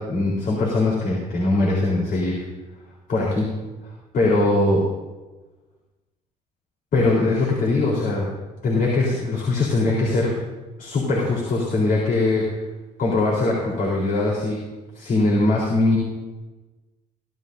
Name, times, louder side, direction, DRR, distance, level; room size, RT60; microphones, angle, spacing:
voice 1, 0.0-2.4 3.1-3.5 4.1-4.8 6.9-8.3 8.6-10.3 10.8-12.4 13.0-14.6 14.9-16.0, left 2 dB, 55° left, -4 dB, 3.9 m, -21 dB
23.0 x 13.5 x 2.7 m, 1.2 s
cardioid pair, 110°, 17 cm